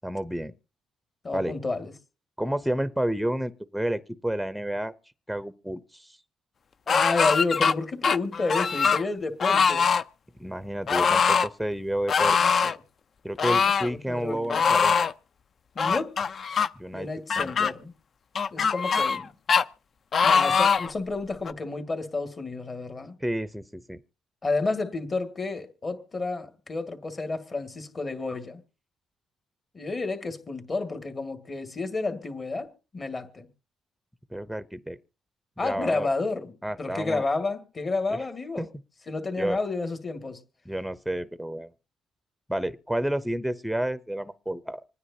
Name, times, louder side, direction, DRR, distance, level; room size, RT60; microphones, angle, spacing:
voice 1, 0.0-0.5 1.3-1.5 2.4-4.9 5.3-6.2 10.4-12.4 13.2-15.1 15.8-16.0 16.8-17.1 17.4-17.7 23.2-24.0 34.3-35.0 35.6-36.1 36.6-37.2 38.1-38.2 38.6-38.7 39.4-39.6 40.7-41.7 42.5-44.8, right 1 dB, ahead, 0.6 m, -30 dB
voice 2, 1.2-1.9 6.9-9.9 10.9-11.2 12.4-12.8 13.6-14.7 15.8-16.2 16.9-17.9 18.5-19.3 20.2-23.2 24.4-28.6 29.7-33.5 35.6-38.7 39.1-40.4, left 3 dB, 35° left, 1.9 m, -31 dB
sound 1, 6.9-7.7 8.0-9.0 9.4-10.0 10.9-11.5 12.1-12.8 13.4-13.9 14.5-15.1 15.8-16.7 17.3-17.7 18.4-19.2 19.5-19.6 20.1-20.9 21.5-21.6, left 6 dB, 50° left, 0.5 m, -22 dB
26.0 x 9.6 x 2.8 m
cardioid pair, 90°, 0 cm